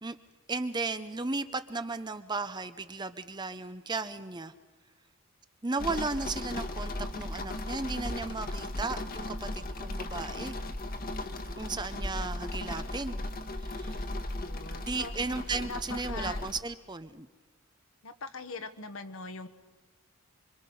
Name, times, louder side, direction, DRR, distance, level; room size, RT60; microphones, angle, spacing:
voice 1, 0.5-4.5 5.6-10.6 11.6-13.2 13.6-14.0 14.8-17.3, right 3 dB, 20° right, 11 dB, 0.7 m, -35 dB
sound 1, 5.8-16.6, left 1 dB, 40° left, 1.4 m, -36 dB
voice 2, 14.3-15.1 15.6-16.4 18.0-19.5, left 3 dB, 65° left, 9 dB, 1.4 m, -42 dB
26.0 x 25.0 x 5.5 m, 1.3 s
head